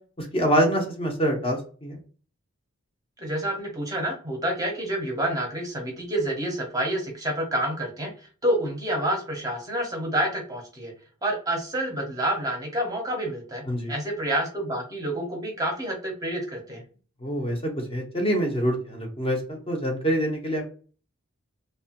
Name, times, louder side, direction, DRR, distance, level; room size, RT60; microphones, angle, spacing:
voice 1, 0.2-2.0 13.7-13.9 17.2-20.7, equal, 25° left, 1 dB, 0.6 m, -25 dB
voice 2, 3.2-10.9 11.2-16.8, right 1 dB, 15° right, 1 dB, 0.7 m, -28 dB
2.9 x 2.2 x 2.8 m, 0.39 s
head